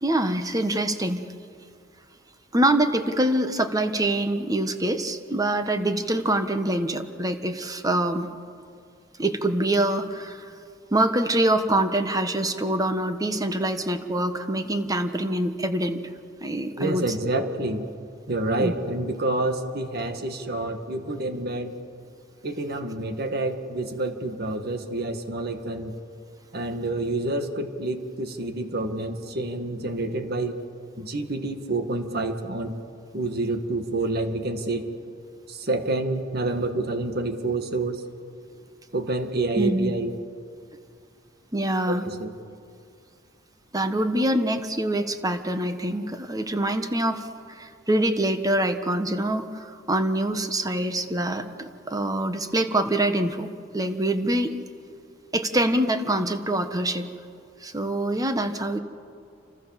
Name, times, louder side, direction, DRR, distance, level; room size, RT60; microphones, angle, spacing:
voice 1, 0.0-1.2 2.5-8.3 9.2-10.5 10.9-16.0 16.4-17.0 18.6-18.7 39.6-39.9 41.5-42.1 43.7-54.5 55.3-57.1 57.6-58.8, right 1 dB, 20° right, 8 dB, 1.3 m, -25 dB
voice 2, 16.8-17.8 18.3-21.7 22.4-25.9 26.5-30.6 31.0-32.8 33.1-34.9 35.5-38.0 38.9-40.1 41.9-42.3, right 2 dB, 55° right, 7 dB, 2.0 m, -28 dB
28.5 x 26.0 x 7.5 m, 2.3 s
head